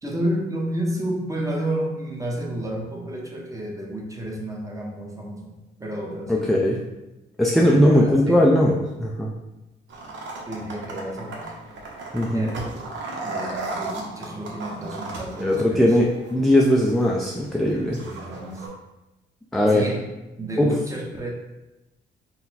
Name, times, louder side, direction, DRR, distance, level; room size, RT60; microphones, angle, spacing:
voice 1, 0.0-6.7 7.5-8.6 10.5-11.5 12.3-12.9 13.2-16.0 18.0-18.7 19.7-20.0 20.4-21.3, right 1 dB, 15° right, -1 dB, 0.9 m, -31 dB
voice 2, 6.3-6.8 7.4-9.3 12.1-12.5 15.4-16.1 16.3-18.0 19.5-19.8 20.6-20.7, left 1 dB, ahead, -2 dB, 0.4 m, -19 dB
sound 1, 9.9-18.7, right 2 dB, 65° right, 1.0 m, -36 dB
4.0 x 2.2 x 4.1 m, 1.0 s
cardioid pair, 90°, 20 cm